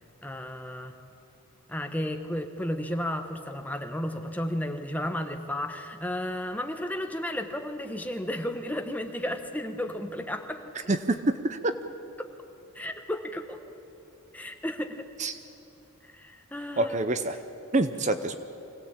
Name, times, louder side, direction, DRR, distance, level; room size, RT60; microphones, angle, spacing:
voice 1, 0.2-1.0 1.7-10.6 12.2-12.3 12.7-13.6 14.3-15.1 16.0-17.1, left 1 dB, 5° left, 5 dB, 1.1 m, -33 dB
voice 2, 10.9-11.7 15.2-15.4 16.8-17.4 17.7-18.4, right 2 dB, 35° right, 10 dB, 0.7 m, -26 dB
24.5 x 17.0 x 8.7 m, 2.9 s
head